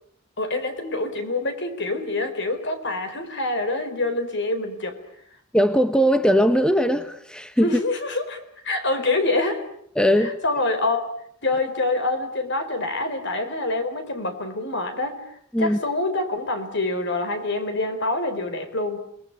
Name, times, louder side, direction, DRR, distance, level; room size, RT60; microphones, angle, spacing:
voice 1, 0.4-5.0 7.6-9.7 10.2-11.0 11.4-19.1, left 2 dB, 60° left, 8 dB, 4.4 m, -26 dB
voice 2, 5.5-7.7 10.0-10.3 15.5-15.8, equal, 5° left, 10 dB, 1.2 m, -19 dB
29.5 x 20.5 x 9.2 m, 0.68 s
head